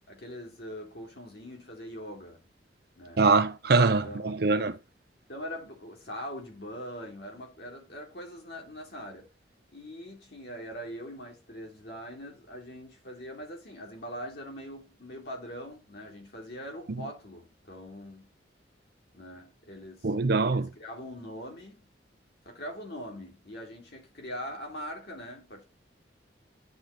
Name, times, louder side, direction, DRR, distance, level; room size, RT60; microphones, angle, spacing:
voice 1, 0.0-2.4 3.0-3.2 4.0-4.6 5.3-9.3 9.7-18.3 19.1-20.1 20.5-21.9 22.4-25.6, equal, 60° left, 2.4 m, -42 dB
voice 2, 3.2-4.8 20.0-20.7, right 3 dB, 55° right, 0.6 m, -23 dB
10.0 x 3.9 x 3.1 m
head